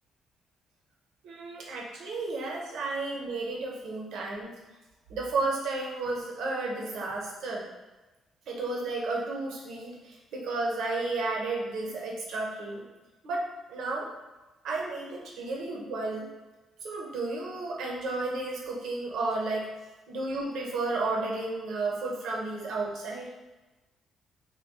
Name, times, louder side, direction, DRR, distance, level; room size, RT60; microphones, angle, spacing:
voice 1, 1.2-4.5 5.1-7.7 8.5-12.8 13.2-14.1 14.6-16.3 16.8-19.7 20.1-23.3, right 3 dB, 80° right, -2 dB, 0.7 m, -32 dB
2.9 x 2.2 x 3.6 m, 1.1 s
cardioid pair, 90°, 0 cm